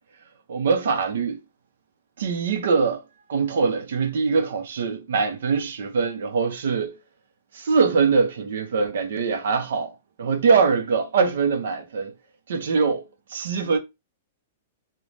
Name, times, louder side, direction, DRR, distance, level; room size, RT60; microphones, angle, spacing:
voice 1, 0.5-1.4 2.2-3.0 3.3-7.0 7.5-12.1 12.5-13.8, right 5 dB, 75° right, 0.5 m, -23 dB
2.5 x 2.1 x 3.1 m
hypercardioid pair, 160°, 0 cm